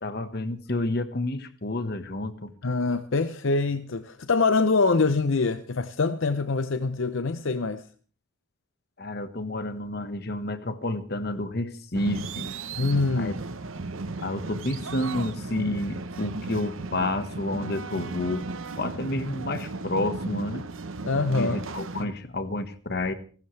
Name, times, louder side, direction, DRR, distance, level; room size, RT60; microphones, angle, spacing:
voice 1, 0.0-2.5 9.0-12.5 13.2-13.3 14.2-18.5 18.8-20.7 21.3-23.1, left 1 dB, 50° left, 1.4 m, -30 dB
voice 2, 2.6-7.8 12.8-13.3 21.0-21.6, left 3 dB, 65° left, 0.7 m, -24 dB
sound 1, 11.9-22.1, right 3 dB, 75° right, 1.0 m, -35 dB
30.0 x 12.5 x 3.3 m
head